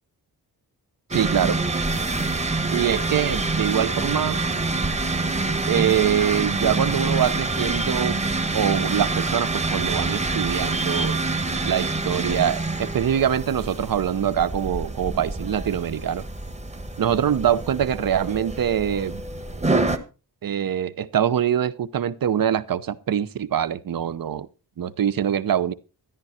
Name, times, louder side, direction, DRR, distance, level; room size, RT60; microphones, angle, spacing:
sound 1, 1.1-20.0, right 3 dB, 20° right, 1.2 m, -26 dB
voice 1, 1.1-1.6 2.7-4.4 5.7-8.2 8.5-11.2 11.6-16.2 17.0-19.2 20.4-24.5 24.8-25.7, right 9 dB, 65° right, 0.9 m, -24 dB
13.5 x 11.0 x 4.4 m
wide cardioid pair, 160°, 37 cm